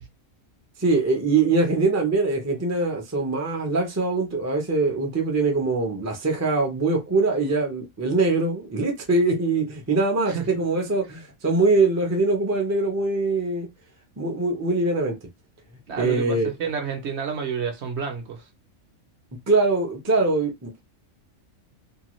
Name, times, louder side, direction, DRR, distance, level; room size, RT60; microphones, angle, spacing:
voice 1, 0.8-13.7 14.2-15.2 16.0-16.5 19.5-20.8, right 3 dB, 20° right, 0.4 m, -23 dB
voice 2, 15.9-18.5, right 6 dB, 60° right, 0.9 m, -30 dB
2.8 x 2.3 x 3.0 m
omnidirectional pair, 1.4 m